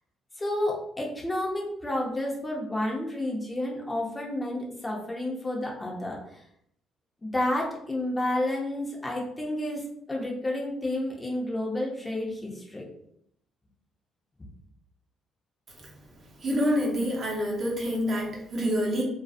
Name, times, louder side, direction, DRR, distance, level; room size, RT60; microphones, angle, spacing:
voice 1, 0.4-6.2 7.2-12.8, left 1 dB, 20° left, -2 dB, 0.7 m, -30 dB
voice 2, 16.4-19.0, equal, 50° right, -2 dB, 0.8 m, -27 dB
2.6 x 2.3 x 2.4 m, 0.72 s
cardioid pair, 80°, 0 cm